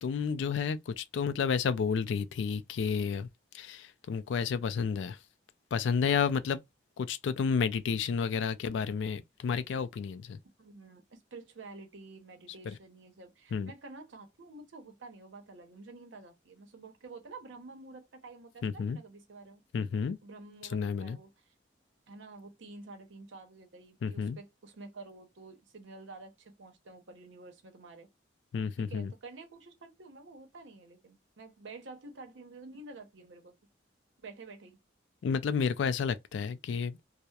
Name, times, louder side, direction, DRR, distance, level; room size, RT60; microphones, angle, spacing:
voice 1, 0.0-3.3 3.5-5.2 5.7-6.6 7.0-10.4 12.7-12.8 13.5-13.7 18.6-19.0 19.7-20.2 20.7-21.2 24.0-24.4 28.5-29.1 35.2-37.0, left 6 dB, 75° left, 0.3 m, -31 dB
voice 2, 10.6-19.6 20.2-21.5 22.1-28.1 28.8-33.6 34.2-34.8, right 3 dB, 85° right, 0.7 m, -49 dB
2.8 x 2.0 x 2.3 m
head